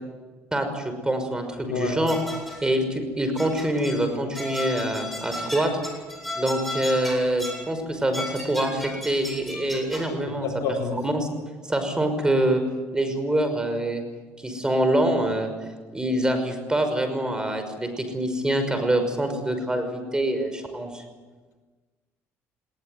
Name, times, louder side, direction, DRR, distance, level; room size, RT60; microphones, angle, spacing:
voice 1, 0.5-2.2 2.6-5.7 6.3-10.5 10.9-11.3 11.7-12.6 12.9-14.0 14.4-15.5 15.9-21.0, right 1 dB, 15° right, 7 dB, 5.7 m, -25 dB
voice 2, 1.6-2.0 10.3-11.0, left 4 dB, 65° left, 3 dB, 4.1 m, -28 dB
sound 1, 2.1-2.7 3.4-4.1 4.3-7.7 8.1-10.1, left 2 dB, ahead, 7.8 m, -35 dB
20.0 x 18.5 x 9.5 m, 1.3 s
supercardioid pair, 85°, 6 cm